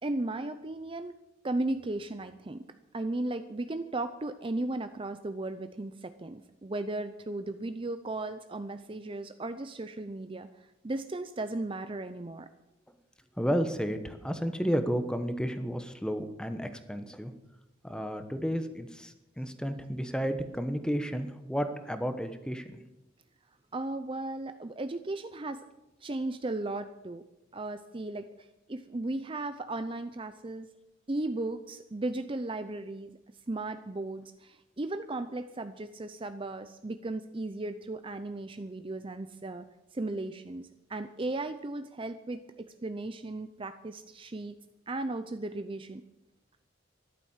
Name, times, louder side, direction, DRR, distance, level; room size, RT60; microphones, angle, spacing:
voice 1, 0.0-1.2 1.4-2.6 2.9-12.5 23.7-25.6 26.0-27.2 27.5-30.7 31.1-33.2 33.5-39.7 39.9-44.5 44.9-46.0, right 2 dB, 25° right, 9 dB, 0.6 m, -36 dB
voice 2, 13.4-17.3 17.8-22.8, equal, 5° left, 8 dB, 1.2 m, -32 dB
13.5 x 12.0 x 7.3 m, 0.93 s
head